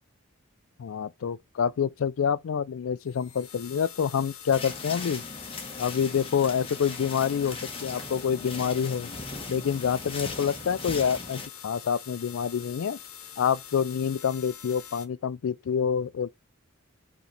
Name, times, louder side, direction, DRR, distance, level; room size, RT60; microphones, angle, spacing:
voice 1, 0.8-5.2 5.8-9.1 9.5-13.0 13.4-16.3, left 7 dB, 70° left, 0.4 m, -27 dB
sound 1, 3.0-15.1, left 9 dB, 85° left, 1.0 m, -45 dB
sound 2, 4.5-11.5, left 3 dB, 25° left, 1.1 m, -39 dB
4.9 x 3.2 x 3.1 m
head